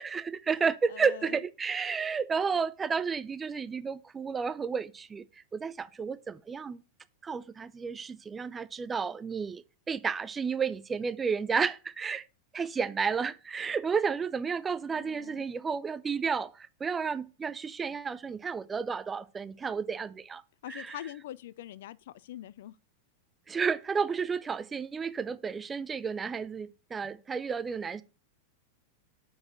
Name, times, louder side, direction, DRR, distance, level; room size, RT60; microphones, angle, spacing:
voice 1, 0.0-5.2 5.5-6.8 7.2-12.2 12.5-20.4 20.7-21.0 23.5-28.0, right 5 dB, 15° right, 0.5 m, -32 dB
voice 2, 0.9-1.4 14.9-15.4 20.6-22.8, left 13 dB, 55° left, 0.3 m, -43 dB
6.3 x 4.8 x 6.1 m
figure-of-eight pair, 90°, 0 cm